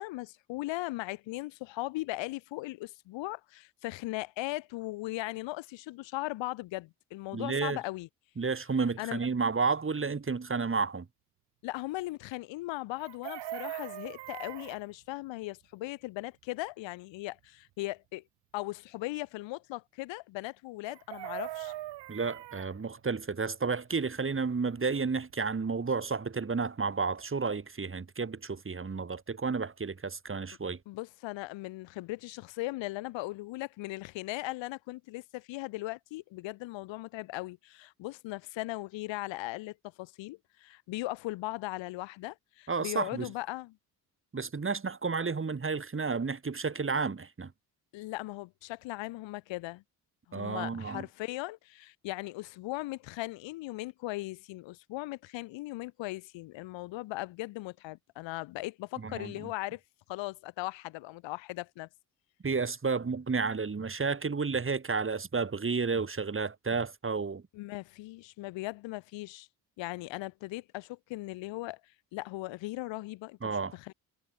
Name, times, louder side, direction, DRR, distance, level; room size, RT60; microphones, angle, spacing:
voice 1, 0.0-8.1 9.0-9.2 11.6-18.2 18.5-21.7 30.9-43.8 47.9-49.8 50.3-59.8 60.1-61.9 67.5-69.5 69.8-71.8 72.1-73.9, left 19 dB, 60° left, 2.8 m, -38 dB
voice 2, 7.3-7.8 8.4-11.1 22.1-30.8 42.7-43.3 44.3-47.5 50.3-51.0 59.0-59.3 62.4-67.4 73.4-73.9, right 4 dB, 25° right, 4.2 m, -31 dB
Chicken rooster, 13.0-14.8 20.9-22.7 24.9-25.0 25.3-25.5, right 15 dB, 55° right, 2.5 m, -41 dB
figure-of-eight pair, 50°, 50 cm